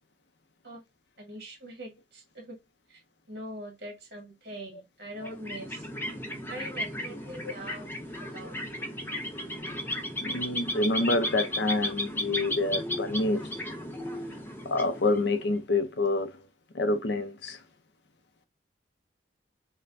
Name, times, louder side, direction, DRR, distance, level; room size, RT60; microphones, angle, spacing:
voice 1, 1.2-2.6 2.9-3.0 3.3-5.9 6.5-7.9 8.2-8.6, right 1 dB, 60° right, 1.5 m, -42 dB
sound 1, 5.2-15.6, left 1 dB, 10° left, 0.6 m, -35 dB
voice 2, 10.2-13.5 14.7-16.3 16.7-17.6, left 2 dB, 70° left, 0.6 m, -27 dB
5.2 x 2.2 x 2.6 m
head